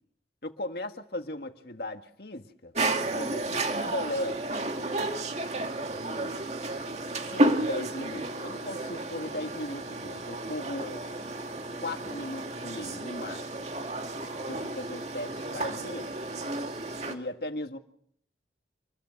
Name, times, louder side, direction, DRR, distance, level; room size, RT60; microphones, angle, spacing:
voice 1, 0.4-2.7 3.1-4.4 5.9-6.4 7.3-11.1 11.8-13.7 14.5-16.1 17.0-17.8, left 1 dB, 55° left, 1.9 m, -37 dB
sound 1, 2.7-17.2, right 2 dB, 40° right, 2.3 m, -32 dB
28.0 x 21.5 x 6.6 m
head